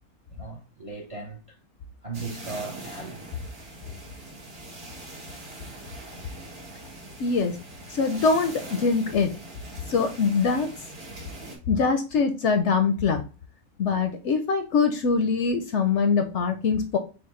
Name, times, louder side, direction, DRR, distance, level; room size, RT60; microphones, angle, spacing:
voice 1, 0.3-1.6 2.0-3.3, right 4 dB, 40° right, 0.5 m, -37 dB
sound 1, 2.1-11.6, right 2 dB, 80° right, 2.1 m, -42 dB
voice 2, 7.2-7.5 7.9-9.3 9.9-10.7 11.7-13.2 13.8-17.0, left 5 dB, 65° left, 0.7 m, -23 dB
6.0 x 2.1 x 3.1 m
omnidirectional pair, 1.5 m